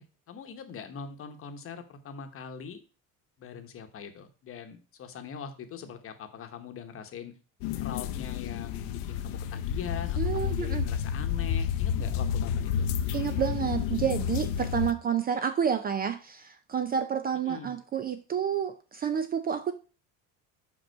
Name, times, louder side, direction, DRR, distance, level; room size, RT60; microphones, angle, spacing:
voice 1, 0.0-2.8 3.4-7.3 7.8-12.9 17.4-17.7, left 7 dB, 40° left, 7 dB, 1.0 m, -42 dB
sound 1, 7.6-14.9, left 8 dB, 75° left, 0.7 m, -30 dB
voice 2, 10.2-10.8 13.1-19.7, right 8 dB, 25° right, 10 dB, 0.4 m, -29 dB
5.4 x 5.3 x 4.5 m, 0.35 s
cardioid pair, 130°, 35 cm